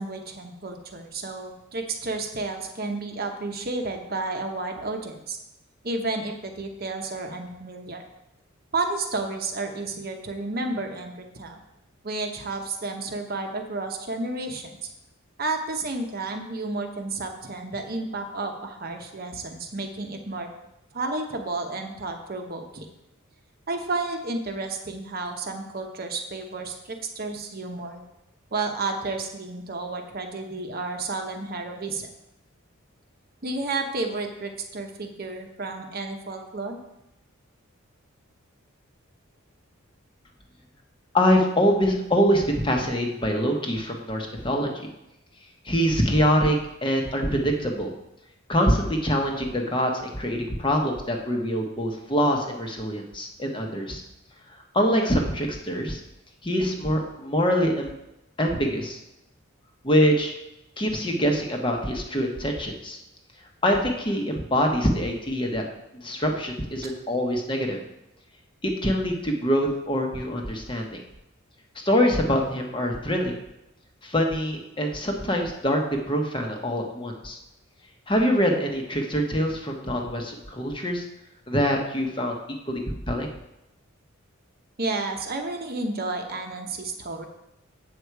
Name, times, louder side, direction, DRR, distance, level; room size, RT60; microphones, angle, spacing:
voice 1, 0.0-5.4 5.8-8.0 8.7-11.6 12.0-14.8 15.4-20.5 20.9-22.9 23.7-28.0 28.5-32.1 33.4-36.8 66.8-66.9 84.8-87.2, right 3 dB, 45° right, 4 dB, 0.9 m, -31 dB
voice 2, 41.1-44.9 45.6-46.6 46.8-47.9 48.5-54.0 54.7-56.0 56.4-57.9 58.4-59.0 59.8-60.3 60.8-63.0 63.6-65.6 65.9-67.8 68.6-71.0 71.7-73.3 74.0-75.8 76.1-77.4 78.1-81.0 81.5-82.3 82.7-83.3, equal, 25° left, 2 dB, 1.1 m, -24 dB
8.2 x 7.1 x 4.7 m, 0.88 s
head